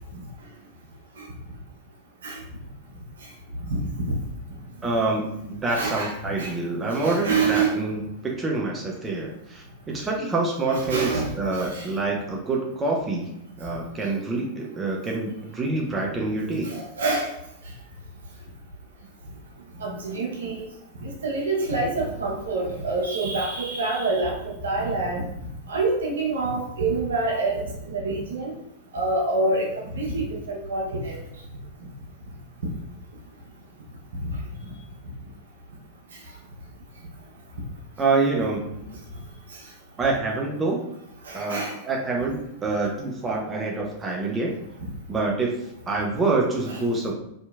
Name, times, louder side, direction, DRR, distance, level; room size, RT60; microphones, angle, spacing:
voice 1, 4.8-13.3 13.6-16.8 38.0-39.0 40.0-40.9 41.3-44.5 45.1-45.5 45.9-47.1, right 3 dB, 20° right, -1 dB, 0.5 m, -26 dB
voice 2, 5.7-6.5 6.9-7.8 10.7-11.9 16.6-17.3 19.8-20.7 21.0-25.3 25.7-28.5 28.9-31.2 34.2-34.4 41.2-41.8 44.8-44.9 46.7-46.8, right 3 dB, 65° right, -1 dB, 0.6 m, -27 dB
2.7 x 2.7 x 2.3 m, 0.79 s
figure-of-eight pair, 90°, 0 cm